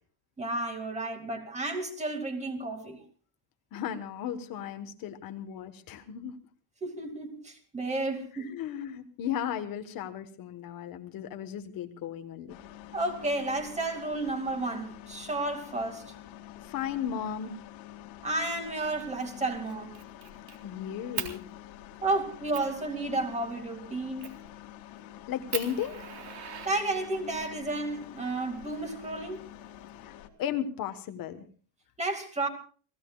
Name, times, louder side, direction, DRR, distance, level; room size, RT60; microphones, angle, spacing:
voice 1, 0.4-3.0 6.8-8.5 12.9-16.1 18.2-19.9 22.0-24.3 26.6-29.5 32.0-32.5, right 2 dB, 15° right, 2.4 m, -32 dB
voice 2, 3.7-6.3 8.3-12.6 16.6-17.5 20.6-21.4 25.3-26.1 30.0-31.5, left 9 dB, 45° left, 1.3 m, -35 dB
sound 1, 12.5-30.3, left 12 dB, 85° left, 2.6 m, -47 dB
Fire, 19.0-19.3 19.7-20.6 21.1-21.3 21.9-22.0 22.5-22.7 24.2-24.5 25.0-25.1 25.5-27.3 28.3-29.3, right 9 dB, 50° right, 3.8 m, -39 dB
29.5 x 17.5 x 2.4 m
cardioid pair, 180°, 46 cm